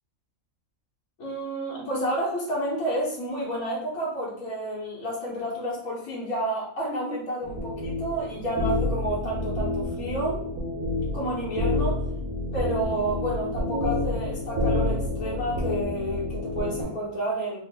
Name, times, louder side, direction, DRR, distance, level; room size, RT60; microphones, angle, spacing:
voice 1, 1.2-10.4 11.1-12.0 12.5-17.6, right 1 dB, 90° left, -5 dB, 1.6 m, -30 dB
sound 1, 7.4-16.8, left 2 dB, 70° right, 1.2 m, -28 dB
3.9 x 2.1 x 3.6 m, 0.64 s
omnidirectional pair, 1.5 m